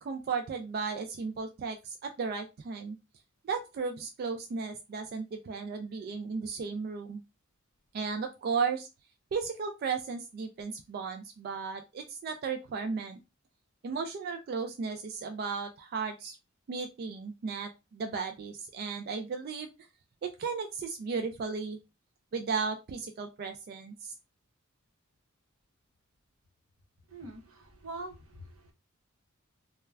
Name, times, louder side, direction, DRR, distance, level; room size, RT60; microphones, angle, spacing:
voice 1, 0.0-3.0 3.4-7.2 7.9-8.9 9.3-13.2 13.8-16.4 16.7-19.7 20.2-21.8 22.3-24.1, right 5 dB, 50° right, 5 dB, 0.3 m, -35 dB
voice 2, 27.1-28.7, right 2 dB, 85° right, 2 dB, 0.8 m, -44 dB
2.3 x 2.2 x 3.2 m, 0.26 s
head